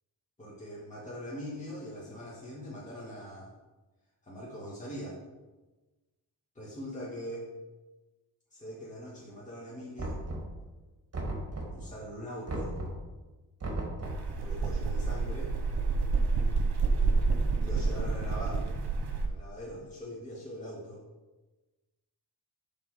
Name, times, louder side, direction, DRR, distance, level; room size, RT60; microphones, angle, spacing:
voice 1, 0.4-3.5 4.2-5.2 6.6-7.5 8.5-10.2 11.7-12.8 14.3-15.5 17.6-18.6 19.2-21.0, equal, 20° left, -6 dB, 2.1 m, -42 dB
Knock, 10.0-10.7 11.1-11.9 12.5-13.1 13.6-14.3, right 1 dB, 35° right, 2.2 m, -36 dB
sound 1, 14.0-19.3, right 4 dB, 65° right, 1.2 m, -28 dB
7.8 x 4.2 x 6.7 m, 1.2 s
cardioid pair, 80°, 41 cm